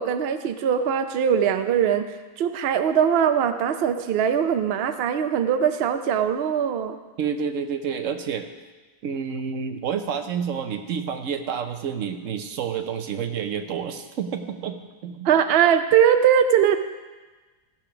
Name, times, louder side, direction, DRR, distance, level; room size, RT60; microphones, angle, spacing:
voice 1, 0.0-2.1 2.4-7.0 15.2-16.8, right 8 dB, 85° right, 9 dB, 0.5 m, -21 dB
voice 2, 7.2-8.5 9.0-15.3, right 7 dB, 60° right, 7 dB, 1.0 m, -29 dB
15.0 x 5.0 x 5.9 m, 1.3 s
omnidirectional pair, 1.8 m